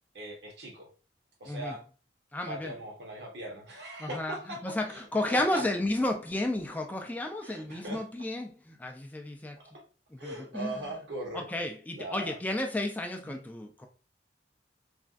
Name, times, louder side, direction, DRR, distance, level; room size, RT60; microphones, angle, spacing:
voice 1, 0.1-0.9 1.4-1.8 2.5-5.0 5.3-5.6 7.4-8.0 9.6-9.7 10.2-11.6 11.9-12.3 13.2-13.4, right 1 dB, 75° right, 1.1 m, -40 dB
voice 2, 1.5-1.8 2.3-2.7 4.0-9.6 10.1-10.7 11.3-13.9, left 1 dB, 10° left, 0.3 m, -32 dB
3.3 x 2.3 x 2.4 m
head